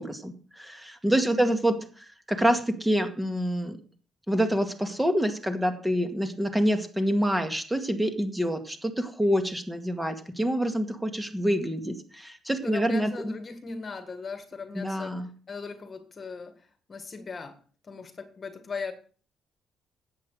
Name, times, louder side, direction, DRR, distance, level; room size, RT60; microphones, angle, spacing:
voice 1, 0.0-3.8 4.3-13.3 14.7-15.3, equal, 10° right, 6 dB, 2.0 m, -27 dB
voice 2, 1.2-1.6 12.6-15.2 15.5-16.5 16.9-17.6 17.9-18.9, left 4 dB, 40° left, 9 dB, 1.7 m, -38 dB
10.5 x 8.5 x 6.4 m, 0.41 s
cardioid pair, 90°, 0 cm